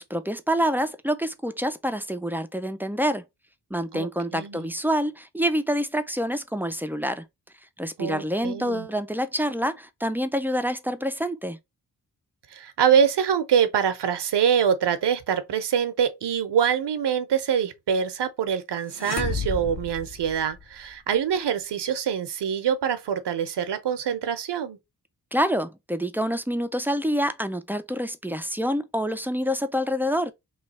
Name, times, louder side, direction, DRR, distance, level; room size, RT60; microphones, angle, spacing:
voice 1, 0.0-3.2 3.7-7.2 7.8-11.6 25.3-30.3, equal, 5° right, 0.3 m, -27 dB
voice 2, 3.9-4.7 8.0-8.9 12.5-24.8, right 8 dB, 70° right, 0.7 m, -25 dB
sound 1, 18.9-20.9, left 5 dB, 40° left, 0.7 m, -32 dB
3.2 x 2.3 x 4.0 m
cardioid pair, 80°, 42 cm